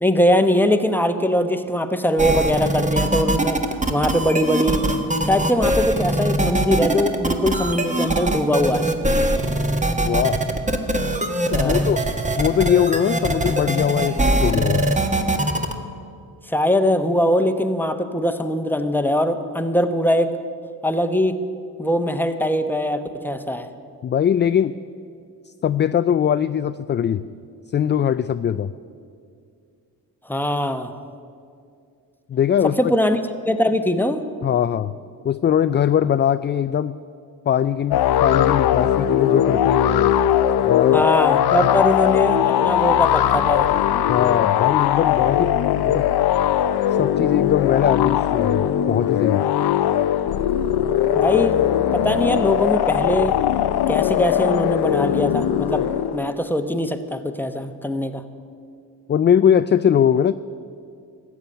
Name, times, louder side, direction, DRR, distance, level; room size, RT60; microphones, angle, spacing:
voice 1, 0.0-3.6 3.9-4.9 5.2-8.9 11.5-11.9 16.5-20.3 20.8-21.4 21.8-23.7 30.3-30.9 32.8-33.2 33.5-34.2 40.9-43.7 51.1-51.6 51.9-53.4 53.9-55.9 56.1-58.2, left 1 dB, 5° left, 8 dB, 1.1 m, -21 dB
sound 1, 2.2-15.7, right 1 dB, 20° right, 1.3 m, -22 dB
voice 2, 10.0-10.4 11.5-12.0 12.4-14.9 24.0-24.7 25.6-27.2 27.7-28.7 32.3-32.8 34.4-35.0 35.2-36.9 37.5-40.2 40.6-41.0 44.1-45.5 45.8-46.1 47.0-49.4 59.1-60.3, left 9 dB, 30° left, 12 dB, 0.3 m, -20 dB
sound 2, 37.9-56.3, left 11 dB, 70° left, 0.7 m, -20 dB
14.0 x 7.3 x 9.8 m, 2.4 s
supercardioid pair, 60°, 39 cm